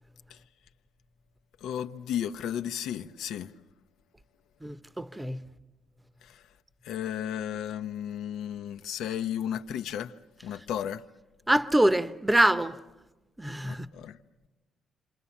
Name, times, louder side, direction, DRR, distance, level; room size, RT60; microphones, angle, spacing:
voice 1, 1.6-3.5 6.2-6.4 6.8-10.1 10.4-11.0 13.6-14.2, left 10 dB, 85° left, 0.9 m, -34 dB
voice 2, 4.6-5.4 11.5-12.8 13.4-13.9, right 1 dB, 10° right, 0.9 m, -25 dB
27.5 x 27.0 x 7.2 m
cardioid pair, 90°, 0 cm